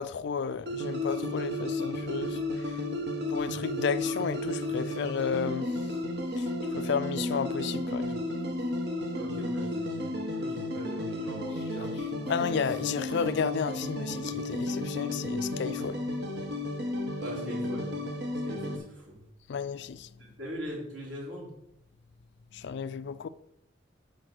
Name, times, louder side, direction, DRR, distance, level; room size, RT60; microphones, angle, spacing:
voice 1, 0.0-2.8 3.3-5.9 6.4-8.3 12.3-16.0 19.5-20.1 22.5-23.3, left 6 dB, 60° left, 0.4 m, -32 dB
sound 1, 0.7-18.8, left 1 dB, 60° right, 1.2 m, -33 dB
voice 2, 9.1-11.9 17.2-18.0 18.4-19.2 20.2-21.5, equal, 75° right, 3.2 m, -41 dB
7.8 x 4.8 x 5.9 m
head